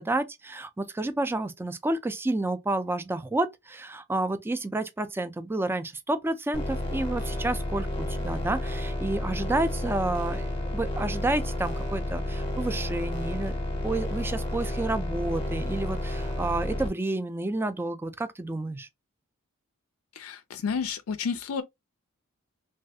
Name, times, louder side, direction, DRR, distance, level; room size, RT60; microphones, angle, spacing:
voice 1, 0.0-10.5 10.7-13.6 13.8-18.9, right 2 dB, 10° right, 0.3 m, -30 dB
sound 1, 6.5-16.9, left 1 dB, 25° left, 0.8 m, -31 dB
voice 2, 20.1-21.6, left 6 dB, 80° left, 0.4 m, -31 dB
3.2 x 2.3 x 2.6 m
head